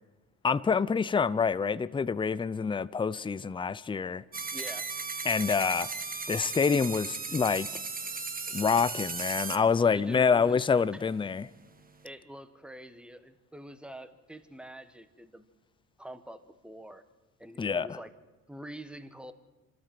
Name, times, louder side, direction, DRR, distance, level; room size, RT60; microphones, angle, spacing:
voice 1, 0.4-4.2 5.2-5.9 6.3-7.7 8.5-11.5 17.6-18.0, left 5 dB, 15° left, 0.5 m, -27 dB
sound 1, 4.3-9.6, right 4 dB, 25° right, 1.5 m, -36 dB
voice 2, 4.5-4.9 9.9-11.0 12.0-15.5 16.0-17.0 17.4-18.1 18.5-19.3, right 1 dB, 5° right, 1.4 m, -46 dB
26.0 x 13.5 x 7.7 m
cardioid pair, 95°, 36 cm